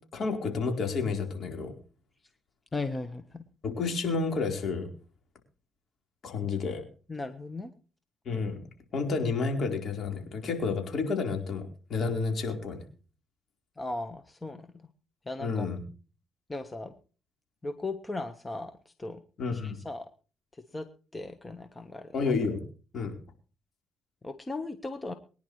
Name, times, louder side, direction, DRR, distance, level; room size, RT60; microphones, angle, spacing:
voice 1, 0.1-1.7 3.6-4.9 6.2-6.8 8.3-8.6 8.9-12.8 15.4-15.8 19.4-19.8 22.1-22.6 22.9-23.1, left 4 dB, 55° left, 3 dB, 4.3 m, -30 dB
voice 2, 2.7-3.4 7.1-7.7 13.8-14.7 15.3-15.7 16.5-16.9 17.6-18.7 19.0-19.2 19.5-20.1 20.7-20.9 21.1-22.1 24.2-25.1, left 2 dB, 20° left, 9 dB, 1.2 m, -37 dB
23.5 x 10.5 x 3.2 m, 0.37 s
cardioid pair, 90°, 0 cm